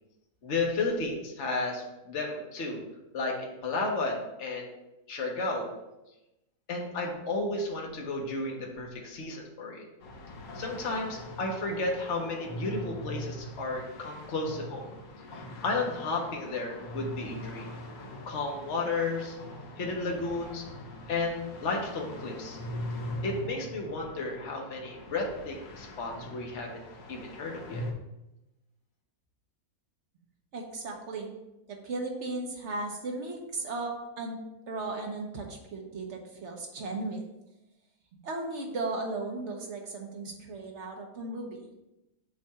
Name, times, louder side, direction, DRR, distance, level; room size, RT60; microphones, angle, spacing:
voice 1, 0.4-2.8 3.1-4.7 5.1-5.7 6.7-9.8 10.5-14.9 15.3-17.7 18.3-19.4 19.8-20.6 21.1-22.6 23.2-26.8 27.1-27.8, left 3 dB, 55° left, 0 dB, 1.4 m, -33 dB
sound 1, 10.0-27.9, left 1 dB, 70° left, 1.5 m, -42 dB
voice 2, 30.5-31.3 31.7-34.4 34.7-37.2 38.2-41.7, right 2 dB, 50° right, 1 dB, 1.3 m, -36 dB
7.5 x 2.5 x 5.6 m, 0.94 s
omnidirectional pair, 1.6 m